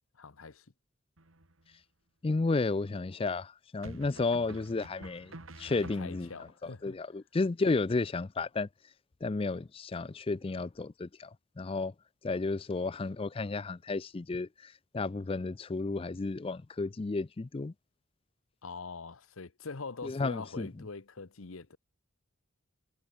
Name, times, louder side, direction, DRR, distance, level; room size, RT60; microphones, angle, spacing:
voice 1, 0.1-0.6 5.7-6.9 18.6-21.8, left 4 dB, 75° left, 1.0 m, -44 dB
sound 1, 1.2-1.8 3.8-6.5, right 2 dB, 75° right, 2.9 m, -49 dB
voice 2, 2.2-8.7 9.2-11.9 12.2-17.7 20.0-20.7, left 3 dB, 25° left, 0.4 m, -33 dB
head